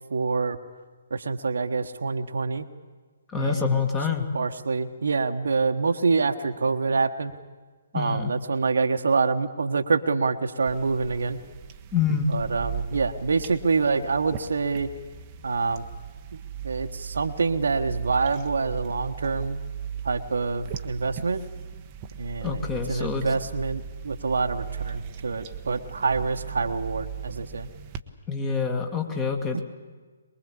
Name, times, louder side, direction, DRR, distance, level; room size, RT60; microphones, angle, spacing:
voice 1, 0.1-0.6 1.1-2.7 3.4-3.7 4.3-7.3 7.9-11.4 12.3-14.9 15.4-15.9 16.6-19.6 20.0-21.4 22.2-22.6 22.9-27.7 29.5-29.6, right 4 dB, 60° right, 7 dB, 1.3 m, -26 dB
voice 2, 3.3-4.3 7.9-8.3 11.9-12.3 22.4-23.4 28.3-29.6, left 5 dB, 15° left, 4 dB, 2.2 m, -26 dB
sound 1, 10.7-28.0, right 7 dB, 25° right, 1.1 m, -38 dB
23.0 x 21.5 x 8.6 m, 1.4 s
figure-of-eight pair, 135°, 0 cm